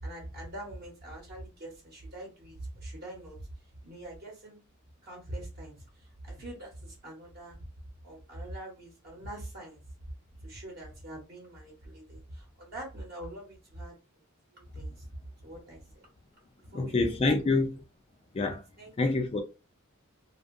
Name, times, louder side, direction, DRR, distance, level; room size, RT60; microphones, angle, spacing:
voice 1, 0.0-4.6 5.0-7.6 8.0-9.8 10.4-13.9 14.5-16.1 16.7-17.5 18.8-19.2, right 1 dB, 45° right, 0.9 m, -44 dB
voice 2, 16.7-17.8 18.3-18.6 19.0-19.4, left 3 dB, 25° left, 0.3 m, -26 dB
2.6 x 2.3 x 2.5 m
head